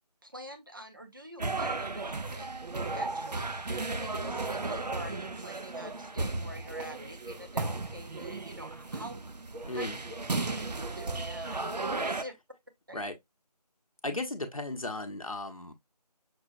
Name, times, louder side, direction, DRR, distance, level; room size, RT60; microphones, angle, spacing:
voice 1, 0.2-2.5 2.9-9.2 9.7-9.8 10.4-12.4 12.9-13.1 14.1-14.3, equal, 30° right, 0.7 m, -46 dB
sound 1, 1.4-12.2, right 3 dB, 75° right, 0.6 m, -35 dB
voice 2, 9.7-10.0 12.9-13.1 14.0-15.7, left 2 dB, 55° left, 0.8 m, -35 dB
6.0 x 2.2 x 2.6 m
figure-of-eight pair, 165°, 21 cm